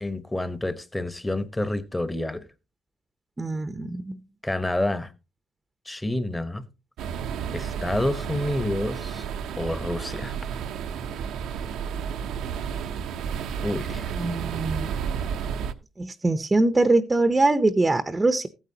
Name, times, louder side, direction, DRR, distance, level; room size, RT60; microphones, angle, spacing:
voice 1, 0.0-2.4 4.4-5.1 5.9-6.7 7.5-9.3 9.6-10.4 13.6-14.1, left 1 dB, 15° left, 1.0 m, -28 dB
voice 2, 3.4-4.2 14.2-14.9 16.0-18.5, right 2 dB, 20° right, 0.7 m, -23 dB
sound 1, 7.0-15.7, right 7 dB, 85° right, 0.8 m, -31 dB
14.5 x 9.1 x 2.8 m
cardioid pair, 90°, 0 cm